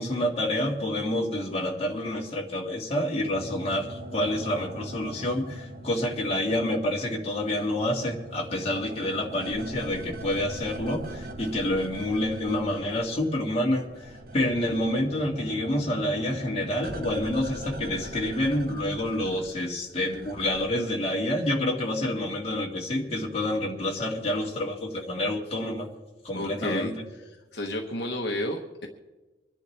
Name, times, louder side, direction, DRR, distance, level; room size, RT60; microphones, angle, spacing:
voice 1, 0.0-25.9 26.2-26.9, left 1 dB, 35° left, -2 dB, 2.0 m, -28 dB
sound 1, 3.3-7.1 7.4-13.4 13.6-20.7, right 1 dB, 50° right, 1.1 m, -41 dB
voice 2, 26.3-28.9, left 1 dB, 60° left, 2 dB, 1.1 m, -32 dB
25.5 x 10.5 x 3.4 m, 1.2 s
head